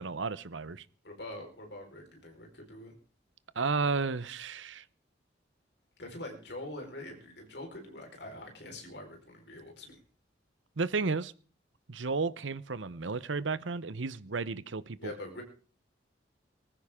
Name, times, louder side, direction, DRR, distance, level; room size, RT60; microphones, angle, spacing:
voice 1, 0.0-0.8 3.6-4.8 10.8-11.3 11.9-15.1, right 4 dB, 85° right, 17 dB, 0.8 m, -33 dB
voice 2, 1.0-2.9 6.0-10.0 15.0-15.4, left 1 dB, 65° left, 2 dB, 4.5 m, -44 dB
20.0 x 15.0 x 3.7 m, 0.39 s
head